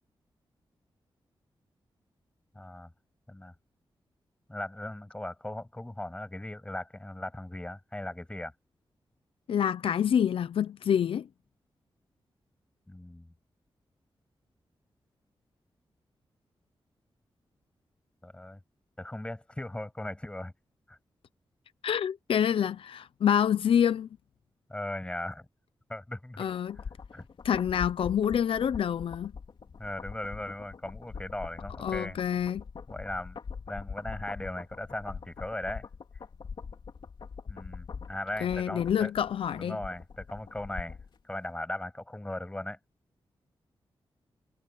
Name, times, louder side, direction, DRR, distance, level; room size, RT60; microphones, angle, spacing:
voice 1, 2.5-2.9 3.3-3.5 4.5-8.5 12.9-13.3 18.2-18.6 19.0-20.5 20.9-21.0 24.7-25.5 25.9-26.5 27.1-27.2 29.8-32.2 32.9-33.4 33.7-35.9 37.5-39.1 39.6-41.0 41.2-42.8, left 1 dB, 10° left, 6.9 m, -38 dB
voice 2, 9.5-11.3 21.8-24.1 26.4-26.8 27.4-29.3 31.8-32.6 38.4-39.8, left 9 dB, 80° left, 0.6 m, -27 dB
sound 1, 26.5-41.2 41.5-41.6, left 5 dB, 60° left, 3.4 m, -43 dB
wide cardioid pair, 130°, 9 cm